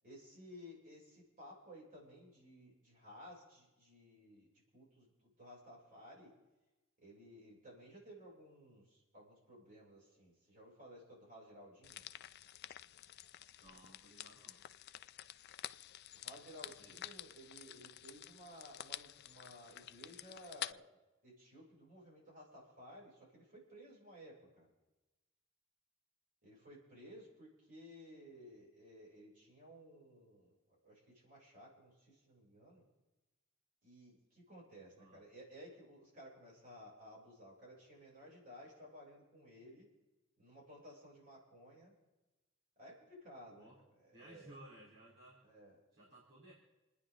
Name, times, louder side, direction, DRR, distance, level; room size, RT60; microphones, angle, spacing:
voice 1, 0.0-6.3 7.0-12.1 16.1-20.9 21.2-24.7 26.4-30.5 30.8-32.8 33.8-39.9 40.4-41.9 42.8-43.7 44.1-44.6 45.4-45.7, equal, 45° right, -5 dB, 7.3 m, -56 dB
sound 1, 11.8-20.7, left 12 dB, 55° left, 0.4 m, -50 dB
voice 2, 13.6-14.7 16.8-17.0 35.0-35.2 43.5-43.8 44.1-45.4 45.9-46.5, right 1 dB, 60° right, -6 dB, 4.2 m, -58 dB
28.5 x 10.0 x 3.9 m, 1.1 s
head